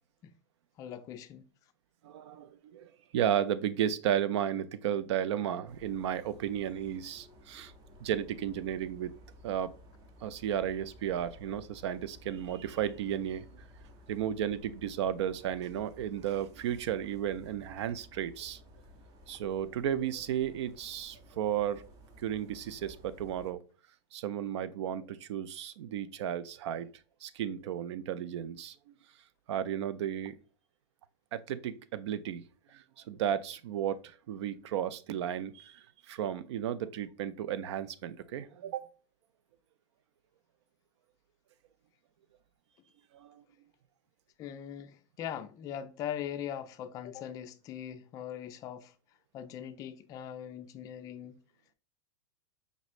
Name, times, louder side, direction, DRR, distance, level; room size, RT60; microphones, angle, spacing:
voice 1, 0.8-1.4 44.4-48.9 49.3-51.4, left 9 dB, 25° left, 0.3 m, -41 dB
voice 2, 2.0-7.7 8.0-9.2 9.4-9.7 10.2-13.6 14.1-18.6 19.3-21.8 22.2-23.6 24.1-26.9 27.2-28.7 29.5-30.3 31.3-32.4 32.7-38.9 43.1-43.4, right 10 dB, 70° right, 0.5 m, -34 dB
sound 1, 5.7-23.5, left 1 dB, 25° right, 0.7 m, -55 dB
5.2 x 3.0 x 2.4 m
supercardioid pair, 155°, 15 cm